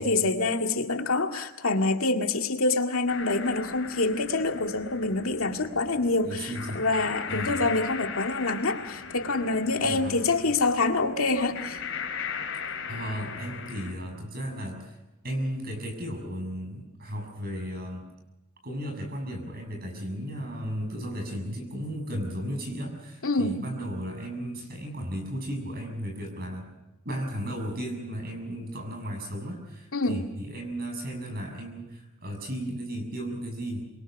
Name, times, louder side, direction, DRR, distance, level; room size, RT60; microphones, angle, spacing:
voice 1, 0.0-11.8 23.2-23.6 29.9-30.2, left 3 dB, 85° left, 4 dB, 2.1 m, -26 dB
sound 1, 3.1-13.9, left 6 dB, 65° left, 4.0 m, -38 dB
voice 2, 6.2-6.9 7.3-7.7 9.8-10.2 12.9-15.0 15.2-18.0 18.6-26.7 27.0-33.9, equal, 45° right, 4 dB, 7.0 m, -35 dB
26.0 x 22.5 x 5.3 m, 0.99 s
head